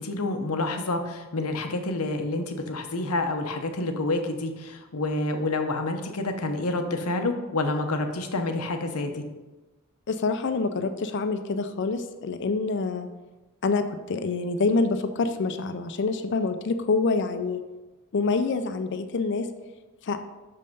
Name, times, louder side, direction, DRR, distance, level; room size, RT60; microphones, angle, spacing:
voice 1, 0.0-9.2, left 2 dB, 90° left, 6 dB, 0.9 m, -28 dB
voice 2, 10.1-13.1 13.6-17.6 18.1-19.5 20.0-20.2, left 3 dB, 55° left, 9 dB, 0.5 m, -26 dB
6.4 x 5.5 x 5.3 m, 1.2 s
head